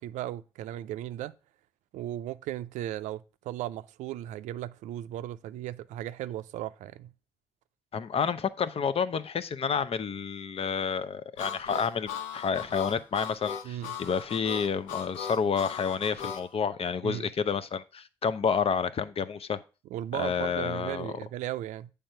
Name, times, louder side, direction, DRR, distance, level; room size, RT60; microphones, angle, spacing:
voice 1, 0.0-1.3 1.9-7.1 13.6-13.9 17.0-17.3 19.9-21.9, right 13 dB, 75° right, 0.4 m, -36 dB
voice 2, 7.9-19.6 20.1-21.1, left 6 dB, 50° left, 0.7 m, -29 dB
Harmonica, 11.4-16.5, left 8 dB, 85° left, 0.8 m, -38 dB
8.8 x 3.5 x 5.5 m
hypercardioid pair, 40°, 13 cm